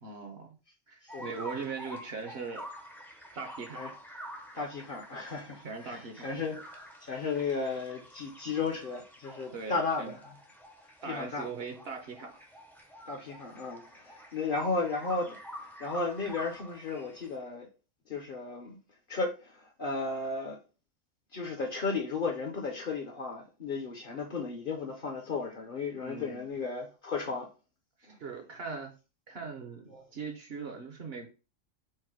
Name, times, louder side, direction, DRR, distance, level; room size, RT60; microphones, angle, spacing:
voice 1, 0.0-0.6 0.9-2.7 3.4-3.9 5.6-6.3 9.5-10.1 11.0-12.5 26.0-26.5 28.0-28.9 29.3-31.3, right 4 dB, 55° right, 1.0 m, -40 dB
sound 1, 1.1-17.4, equal, ahead, 0.5 m, -48 dB
voice 2, 4.5-10.2 11.0-11.5 13.1-17.7 18.1-18.8 19.1-20.6 21.3-27.5 28.1-28.2 29.9-30.0, left 4 dB, 50° left, 0.8 m, -34 dB
4.7 x 2.1 x 4.5 m
omnidirectional pair, 1.4 m